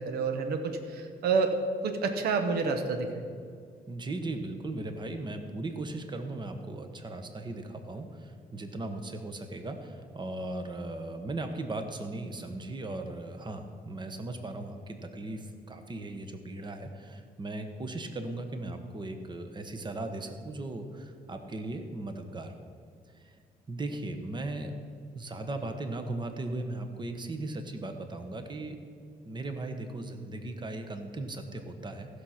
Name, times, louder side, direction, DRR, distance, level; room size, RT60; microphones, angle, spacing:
voice 1, 0.0-1.6 1.8-3.3, right 4 dB, 85° right, 6 dB, 1.0 m, -29 dB
voice 2, 3.9-22.5 23.1-23.4 23.7-24.7 25.1-28.8 29.2-32.1, right 2 dB, 30° right, 7 dB, 1.2 m, -37 dB
15.0 x 6.5 x 5.9 m, 2.2 s
cardioid pair, 90°, 16 cm